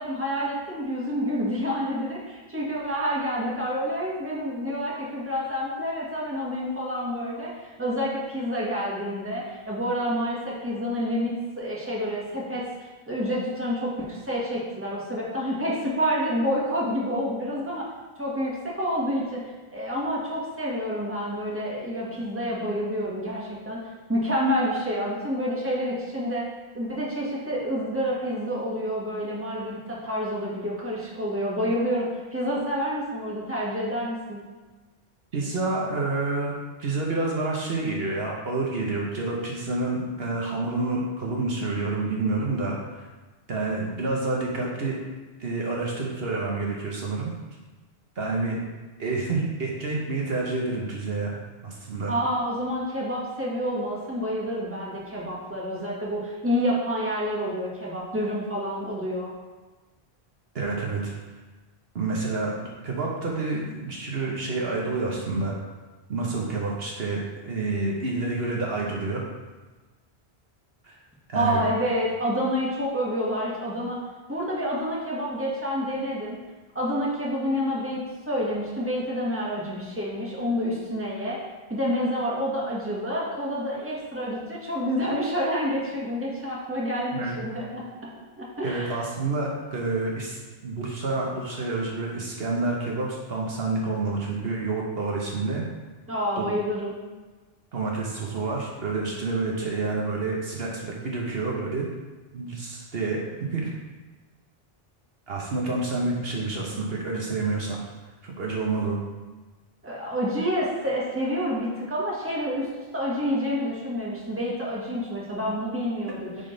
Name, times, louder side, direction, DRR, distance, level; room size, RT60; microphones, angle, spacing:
voice 1, 0.0-7.5 7.8-12.6 13.1-17.9 18.2-19.4 19.7-23.8 24.1-26.4 26.7-34.4 52.1-59.3 71.3-74.0 74.3-76.4 76.7-78.0 78.3-81.4 81.7-87.8 88.4-89.0 96.1-97.0 109.8-116.3, equal, 10° right, -5 dB, 1.5 m, -28 dB
voice 2, 35.3-43.1 43.5-45.0 45.4-47.3 48.2-48.6 49.0-51.3 51.6-52.1 60.5-61.1 61.9-65.5 66.1-69.2 70.8-71.0 71.3-71.6 87.1-87.4 88.6-95.6 96.4-96.5 97.7-101.9 102.3-103.2 103.5-103.7 105.3-107.8 108.2-109.0, right 3 dB, 70° right, -2 dB, 1.2 m, -28 dB
9.0 x 3.7 x 3.9 m, 1.3 s
omnidirectional pair, 1.1 m